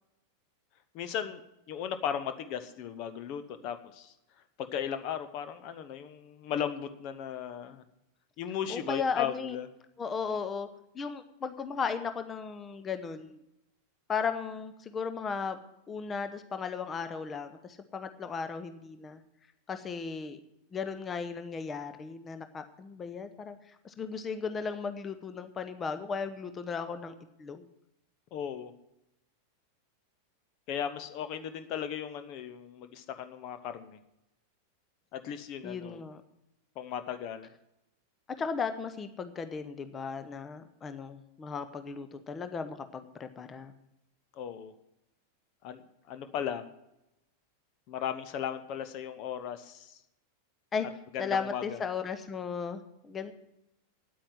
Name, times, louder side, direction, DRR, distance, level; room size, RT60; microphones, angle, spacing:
voice 1, 0.9-4.1 4.6-7.8 8.4-9.7 28.3-28.7 30.7-34.0 35.1-36.0 36.8-37.5 44.3-44.7 45.6-45.8 46.1-46.6 47.9-50.0 51.1-51.8, left 9 dB, 40° left, 10 dB, 0.9 m, -36 dB
voice 2, 8.7-9.6 10.0-10.7 10.9-13.4 14.1-15.6 15.9-19.2 19.7-20.4 20.7-27.1 27.4-27.7 35.6-36.2 38.4-43.7 50.7-50.9 51.2-53.3, left 5 dB, 20° left, 10 dB, 0.9 m, -36 dB
9.4 x 8.8 x 9.0 m, 0.86 s
figure-of-eight pair, 90°, 0 cm